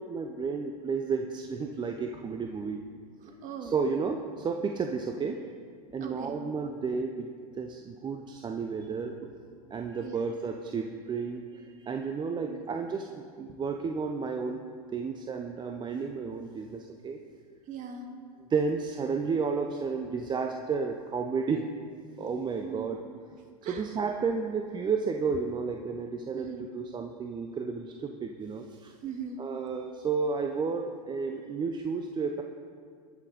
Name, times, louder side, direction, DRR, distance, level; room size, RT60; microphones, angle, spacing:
voice 1, 0.0-2.8 3.6-5.4 5.9-7.3 7.5-9.1 9.7-14.6 14.9-17.2 18.5-21.7 22.2-23.0 23.7-28.9 29.4-32.4, right 5 dB, 25° right, 4 dB, 0.6 m, -32 dB
voice 2, 3.2-3.8 6.0-6.3 6.7-6.8 9.2-9.3 10.0-10.2 12.4-12.6 17.7-18.1 22.6-22.9 23.6-23.8 26.3-26.7 29.0-29.4, right 7 dB, 40° right, 4 dB, 1.7 m, -40 dB
19.5 x 6.5 x 4.0 m, 2.1 s
hypercardioid pair, 90°, 20 cm